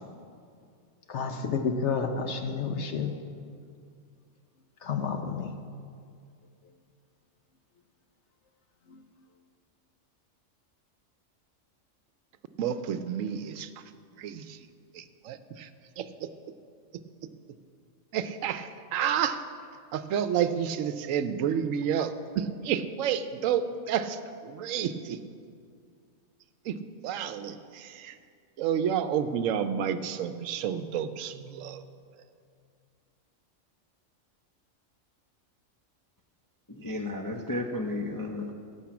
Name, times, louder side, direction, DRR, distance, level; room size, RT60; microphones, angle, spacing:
voice 1, 1.1-3.1 4.8-5.5 8.9-9.0, left 5 dB, 65° left, 5 dB, 1.0 m, -30 dB
voice 2, 12.6-13.7 14.2-14.6 14.9-15.7 16.0-16.3 18.1-19.4 19.9-25.2 26.7-26.8 27.0-28.2 28.6-31.8, right 8 dB, 80° right, 11 dB, 1.0 m, -30 dB
voice 3, 36.7-38.5, left 2 dB, 25° left, 0 dB, 0.5 m, -33 dB
12.0 x 6.2 x 8.4 m, 2.2 s
omnidirectional pair, 1.4 m